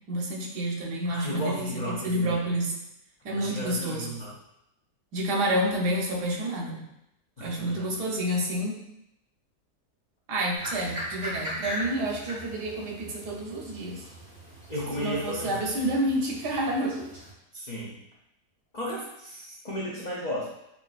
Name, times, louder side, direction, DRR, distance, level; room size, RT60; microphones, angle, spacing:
voice 1, 0.1-2.7 3.2-4.1 5.1-6.8 7.4-8.8 10.3-14.0 15.0-17.1, right 1 dB, 85° right, -1 dB, 1.4 m, -29 dB
voice 2, 1.1-2.4 3.3-4.3 7.4-8.0 14.7-15.6 17.5-18.0 18.7-20.5, equal, 85° left, -6 dB, 0.3 m, -34 dB
sound 1, 10.5-17.3, equal, 65° right, 2.2 m, -40 dB
5.8 x 2.5 x 2.4 m, 0.84 s
omnidirectional pair, 1.7 m